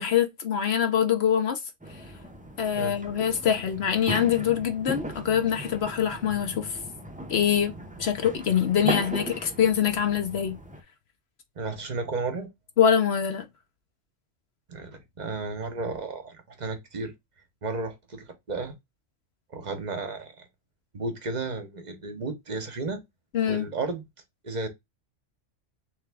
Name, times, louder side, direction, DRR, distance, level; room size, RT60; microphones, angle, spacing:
voice 1, 0.0-1.6 2.6-6.7 7.3-7.7 8.0-10.6 12.8-13.4 23.3-23.7, left 8 dB, 60° left, 1.0 m, -24 dB
sound 1, 1.8-10.8, right 1 dB, 10° right, 0.4 m, -37 dB
voice 2, 11.6-12.5 14.7-17.1 17.6-18.7 19.5-20.5 20.9-23.0 23.5-24.0 24.4-24.7, right 3 dB, 40° right, 1.0 m, -33 dB
3.5 x 3.3 x 3.4 m
omnidirectional pair, 1.3 m